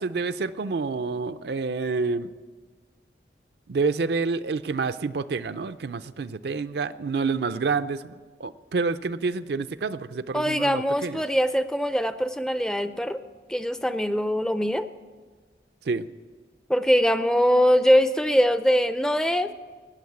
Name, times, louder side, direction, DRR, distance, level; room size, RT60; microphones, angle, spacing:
voice 1, 0.0-2.3 3.7-8.1 8.4-11.2 15.9-16.0, right 4 dB, 65° right, 12 dB, 0.5 m, -28 dB
voice 2, 10.3-13.2 13.5-14.9 16.7-19.5, equal, 5° left, 11 dB, 0.4 m, -22 dB
19.0 x 7.1 x 8.5 m, 1.5 s
head